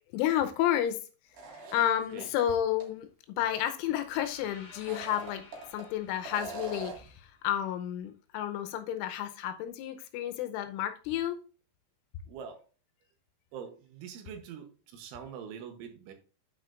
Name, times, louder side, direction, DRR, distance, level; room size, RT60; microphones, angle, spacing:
voice 1, 0.1-1.0 1.5-5.4 5.7-11.4, left 11 dB, 80° left, 3.1 m, -31 dB
sound 1, 1.3-2.4 2.8-2.9 4.7-5.8 6.2-7.1, right 3 dB, 55° right, 3.1 m, -42 dB
sound 2, 3.9-8.0, left 4 dB, 45° left, 1.8 m, -55 dB
voice 2, 12.3-12.6 13.5-16.1, right 7 dB, 75° right, 3.3 m, -44 dB
9.1 x 8.2 x 2.5 m
omnidirectional pair, 5.8 m